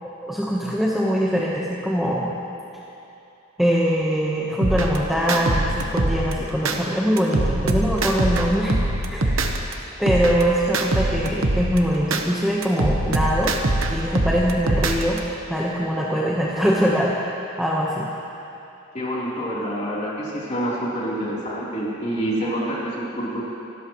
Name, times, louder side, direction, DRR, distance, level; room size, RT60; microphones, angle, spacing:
voice 1, 0.0-2.3 3.6-8.8 9.1-9.6 10.0-13.5 13.9-15.2 15.5-17.2 17.6-18.1, equal, ahead, -6 dB, 1.1 m, -22 dB
sound 1, 4.6-6.8 7.2-9.7 10.1-12.2 12.6-15.2, right 1 dB, 80° right, 1.1 m, -23 dB
voice 2, 18.9-23.4, right 1 dB, 35° left, -7 dB, 3.6 m, -27 dB
26.5 x 13.5 x 3.1 m, 2.8 s
head